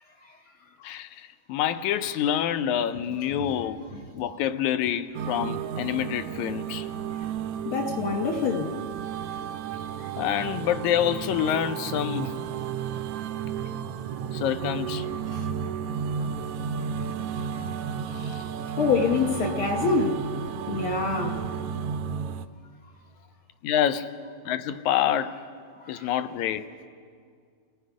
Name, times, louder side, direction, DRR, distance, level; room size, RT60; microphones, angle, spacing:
voice 1, 0.8-3.9 4.1-6.9 10.2-12.4 14.3-15.1 16.2-16.3 18.1-18.5 23.6-24.2 24.5-25.4 25.9-26.7, left 10 dB, 85° left, 2.1 m, -27 dB
sound 1, 5.1-22.5, right 7 dB, 80° right, 1.3 m, -33 dB
voice 2, 7.6-8.7 18.8-20.2 20.7-21.4 26.0-26.1, left 4 dB, 60° left, 1.6 m, -25 dB
28.5 x 18.0 x 5.0 m
omnidirectional pair, 3.4 m